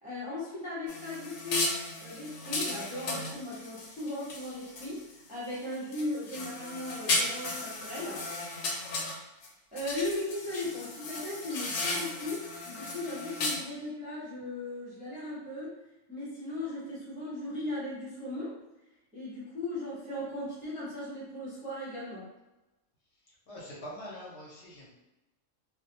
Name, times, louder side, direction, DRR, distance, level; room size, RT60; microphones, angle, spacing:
voice 1, 0.0-1.7 2.0-8.3 9.7-15.8 16.1-18.6 19.1-22.3, left 1 dB, 10° right, -9 dB, 0.6 m, -37 dB
sound 1, 0.9-5.1 5.5-9.5 9.8-13.6, left 2 dB, 90° left, 1.0 m, -35 dB
voice 2, 23.5-24.9, equal, 65° left, -5 dB, 0.9 m, -44 dB
2.5 x 2.0 x 2.7 m, 1.0 s
omnidirectional pair, 1.3 m